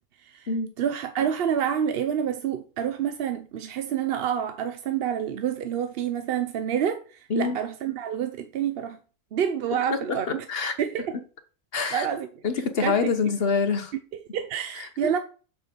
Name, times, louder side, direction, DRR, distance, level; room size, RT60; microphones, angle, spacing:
voice 1, 0.8-9.0 9.3-10.5 10.8-11.2 11.9-12.3 12.8-13.1 14.1-15.2, right 8 dB, 60° right, 0.7 m, -28 dB
voice 2, 11.7-12.1 12.4-13.9 14.8-14.9, left 5 dB, 50° left, 1.0 m, -25 dB
7.1 x 4.5 x 5.0 m
omnidirectional pair, 1.4 m